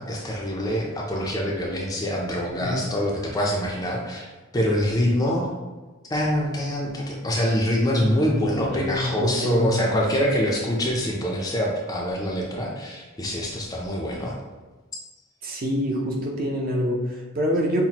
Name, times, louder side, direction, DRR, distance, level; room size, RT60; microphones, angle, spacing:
voice 1, 0.0-4.3 4.5-5.5 6.1-14.4, equal, 15° left, -2 dB, 0.4 m, -25 dB
voice 2, 8.7-10.0 15.4-17.8, equal, 40° right, -1 dB, 0.6 m, -26 dB
5.7 x 2.1 x 2.9 m, 1.3 s
head